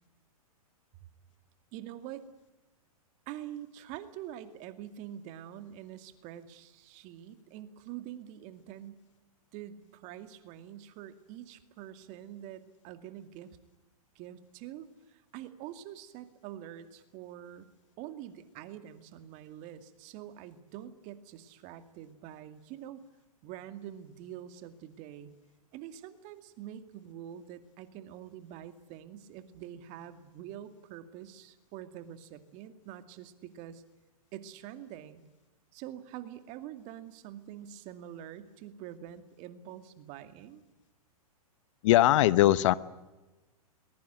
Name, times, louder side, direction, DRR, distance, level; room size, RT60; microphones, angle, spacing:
voice 1, 1.7-2.3 3.3-9.0 9.5-13.6 14.2-17.7 18.0-23.0 23.4-25.3 25.7-33.8 34.3-35.2 35.7-40.6, right 11 dB, 40° right, 9 dB, 2.3 m, -45 dB
voice 2, 41.8-42.7, left 14 dB, 55° left, 17 dB, 1.0 m, -21 dB
22.0 x 20.5 x 9.4 m, 1.1 s
hypercardioid pair, 115°, 19 cm